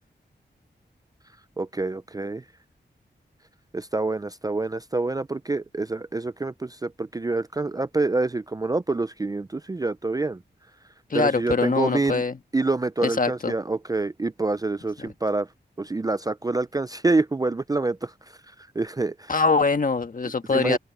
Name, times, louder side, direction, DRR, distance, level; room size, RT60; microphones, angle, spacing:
voice 1, 1.6-2.4 3.7-10.4 11.1-12.2 12.5-15.5 15.8-18.1 18.8-19.3 20.5-20.8, right 3 dB, 20° right, 0.4 m, -26 dB
voice 2, 11.1-12.3 13.0-13.5 19.3-20.8, left 4 dB, 50° left, 1.4 m, -23 dB
open air
wide cardioid pair, 85°, 18 cm